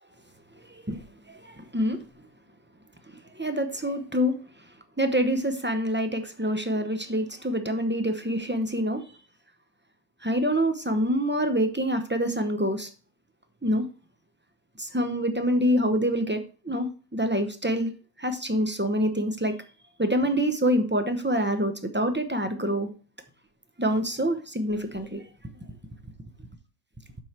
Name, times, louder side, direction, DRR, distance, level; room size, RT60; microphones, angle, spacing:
voice 1, 0.7-1.0 1.5-2.0 3.4-4.3 5.0-9.0 10.2-12.9 13.6-13.8 14.8-16.4 16.7-17.9 18.2-19.5 20.0-22.9 23.8-25.2, equal, 10° right, 8 dB, 0.6 m, -26 dB
7.6 x 5.5 x 4.4 m, 0.35 s
omnidirectional pair, 1.4 m